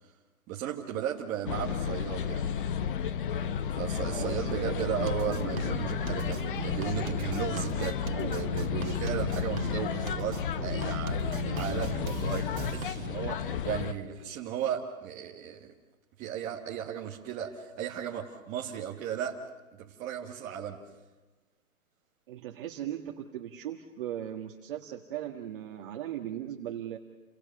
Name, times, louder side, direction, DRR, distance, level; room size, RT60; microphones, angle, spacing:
voice 1, 0.5-2.5 3.7-15.7 16.2-19.4 19.7-20.8, right 9 dB, 15° right, -2 dB, 1.3 m, -35 dB
sound 1, 1.5-13.9, left 7 dB, 35° left, 0.9 m, -32 dB
voice 2, 4.1-4.9 5.3-5.9 7.6-7.8 8.1-8.5 22.3-27.0, right 11 dB, 35° right, 2 dB, 1.7 m, -38 dB
sound 2, 5.1-13.1, right 6 dB, 65° right, 1.9 m, -39 dB
29.5 x 25.0 x 6.6 m, 1.2 s
hypercardioid pair, 155°, 43 cm